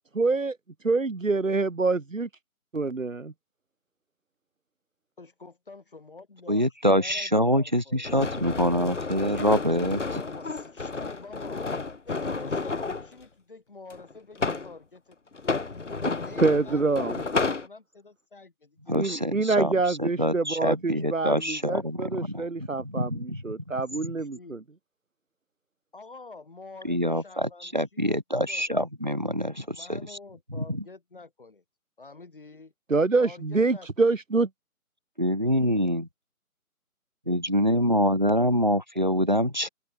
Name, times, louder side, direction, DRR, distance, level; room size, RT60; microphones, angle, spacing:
voice 1, 0.2-0.5 0.8-2.3 2.7-3.3 16.4-17.2 18.9-24.6 32.9-34.5, right 3 dB, 60° right, 2.5 m, -26 dB
voice 2, 5.2-8.8 10.2-11.7 12.1-15.2 15.5-19.4 20.5-20.6 24.0-24.6 25.9-28.7 29.7-31.6 32.0-32.7 33.2-34.1, left 3 dB, 35° left, 7.9 m, -48 dB
voice 3, 6.5-10.2 18.9-23.6 24.0-24.1 26.8-30.0 30.6-30.8 35.2-36.1 37.3-39.7, equal, 30° right, 0.8 m, -26 dB
sound 1, 8.0-13.1 13.9-14.7 15.3-17.7, left 4 dB, 55° left, 1.4 m, -31 dB
open air
figure-of-eight pair, 180°, 44 cm